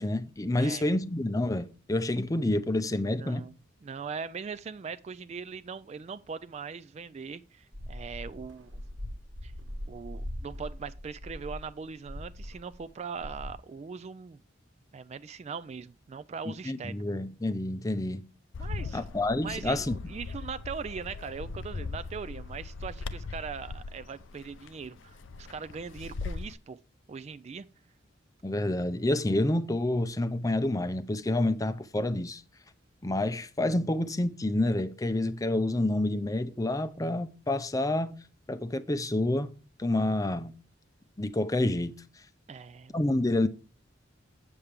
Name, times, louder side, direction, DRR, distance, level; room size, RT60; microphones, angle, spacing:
voice 1, 0.0-3.5 16.5-18.2 18.9-20.0 28.4-32.4 33.0-38.2 38.5-39.5 39.8-40.6 41.2-42.0 42.9-43.5, left 1 dB, 20° left, 0.5 m, -28 dB
voice 2, 3.0-3.5 3.8-8.8 9.4-9.5 9.9-14.4 14.9-16.9 18.6-19.0 19.4-26.8 27.1-27.7 42.5-43.0, right 5 dB, 35° right, 0.3 m, -40 dB
sound 1, 7.7-12.9 13.2-13.5, equal, 75° right, 1.5 m, -41 dB
Bird, 18.5-26.5, left 4 dB, 75° left, 0.5 m, -39 dB
8.0 x 7.3 x 3.3 m
head